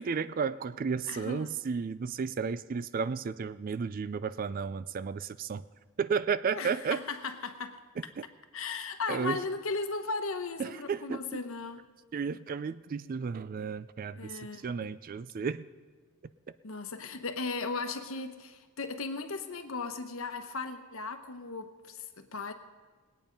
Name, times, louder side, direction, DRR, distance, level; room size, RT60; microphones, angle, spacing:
voice 1, 0.0-5.6 6.0-7.0 9.1-9.4 10.6-11.2 12.1-15.6, right 6 dB, 40° right, 15 dB, 0.3 m, -33 dB
voice 2, 1.1-1.5 6.5-7.8 8.5-11.9 14.2-14.9 16.6-22.5, left 4 dB, 65° left, 8 dB, 1.0 m, -37 dB
20.0 x 8.8 x 5.2 m, 1.4 s
head